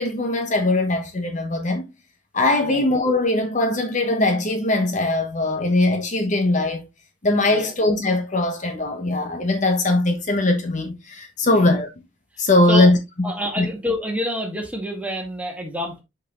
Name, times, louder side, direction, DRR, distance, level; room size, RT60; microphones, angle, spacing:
voice 1, 0.0-1.8 2.3-6.8 7.2-11.9 12.4-13.7, left 2 dB, 40° left, 1.1 m, -20 dB
voice 2, 11.4-11.7 12.7-12.9 13.2-16.0, equal, 5° right, 1.8 m, -28 dB
6.3 x 5.6 x 3.1 m
head